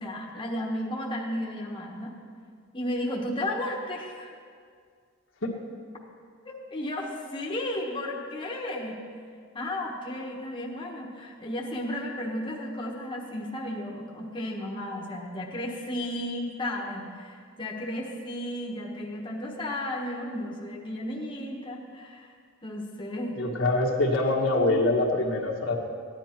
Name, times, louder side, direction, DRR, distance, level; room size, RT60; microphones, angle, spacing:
voice 1, 0.0-2.1 2.7-4.3 6.4-9.0 9.5-22.3 22.6-23.4, left 1 dB, 25° left, -3 dB, 1.3 m, -33 dB
voice 2, 23.3-25.7, left 2 dB, 70° left, -1 dB, 1.6 m, -24 dB
15.5 x 10.5 x 4.5 m, 2.1 s
head